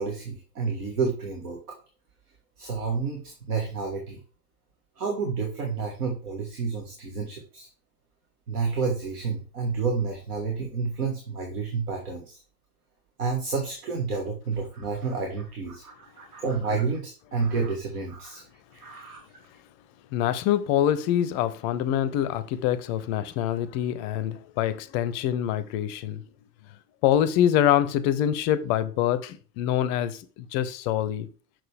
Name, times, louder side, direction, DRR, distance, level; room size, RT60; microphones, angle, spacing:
voice 1, 0.0-1.7 2.6-4.2 5.0-7.7 8.5-12.4 13.2-18.4 18.7-19.3, right 4 dB, 65° right, 1.5 m, -30 dB
voice 2, 20.1-26.2 27.0-30.2 30.5-31.3, left 11 dB, 35° left, 0.5 m, -25 dB
6.5 x 6.0 x 3.3 m
figure-of-eight pair, 80°, 48 cm